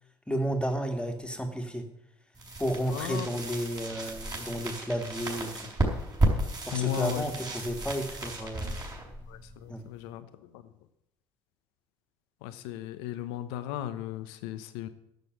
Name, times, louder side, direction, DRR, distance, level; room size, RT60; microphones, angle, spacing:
voice 1, 0.3-1.9 2.6-5.7 6.7-8.8 9.7-9.9, equal, 10° left, 5 dB, 2.2 m, -32 dB
sound 1, 2.3-10.1, right 2 dB, 30° right, 4.4 m, -33 dB
voice 2, 2.9-3.3 6.7-7.3 8.2-8.5 9.3-10.7 12.4-14.9, left 11 dB, 75° left, 11 dB, 1.0 m, -36 dB
10.5 x 6.8 x 9.3 m, 0.82 s
hypercardioid pair, 55°, 13 cm